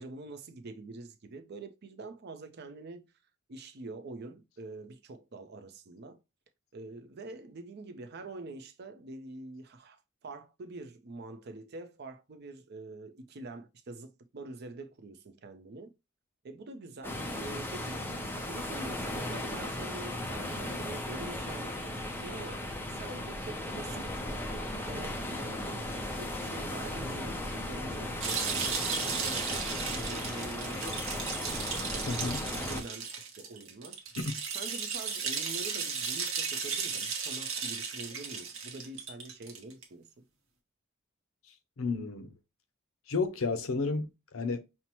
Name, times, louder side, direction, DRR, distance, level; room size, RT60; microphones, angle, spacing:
voice 1, 0.0-3.1 3.5-6.2 6.7-15.9 16.4-18.0 18.3-24.2 24.8-31.1 31.7-34.0 34.5-40.3, right 2 dB, 50° right, 0.5 m, -45 dB
sound 1, 17.0-32.8, left 1 dB, 10° left, 0.5 m, -36 dB
sound 2, 28.2-39.8, right 5 dB, 75° right, 0.9 m, -35 dB
voice 2, 32.1-32.4 34.2-34.4 41.8-42.3 43.1-44.6, left 4 dB, 80° left, 0.6 m, -32 dB
5.4 x 2.1 x 2.9 m
head